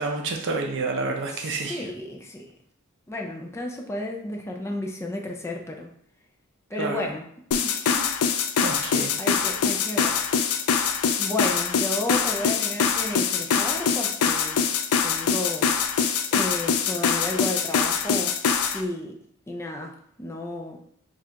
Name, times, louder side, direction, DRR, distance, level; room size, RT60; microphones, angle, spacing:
voice 1, 0.0-1.8 6.8-7.1 8.6-9.1, right 3 dB, 60° right, 3 dB, 0.6 m, -29 dB
voice 2, 1.3-2.5 3.1-5.9 6.7-7.3 7.6-8.0 9.2-10.2 10.5-10.7 11.2-14.6 15.0-15.7 16.3-18.4 18.7-19.2 19.5-20.8, left 1 dB, 10° left, 1 dB, 0.5 m, -32 dB
sound 1, 7.5-18.8, left 6 dB, 70° left, 0.4 m, -24 dB
6.3 x 2.4 x 2.8 m, 0.68 s
head